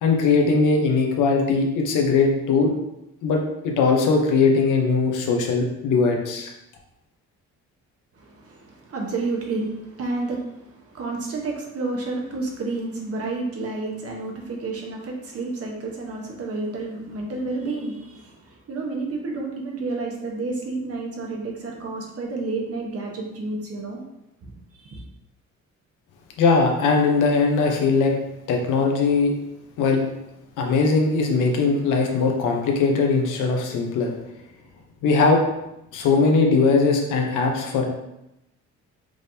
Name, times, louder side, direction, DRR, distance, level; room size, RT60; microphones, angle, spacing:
voice 1, 0.0-2.7 3.2-6.5 26.4-28.1 28.5-29.3 29.8-30.0 30.6-34.1 35.0-35.4 35.9-37.8, left 4 dB, 85° left, 1 dB, 0.9 m, -20 dB
voice 2, 8.1-24.0 24.4-25.0, right 3 dB, 50° right, 0 dB, 1.1 m, -30 dB
5.0 x 3.5 x 2.8 m, 0.88 s
cardioid pair, 90°, 30 cm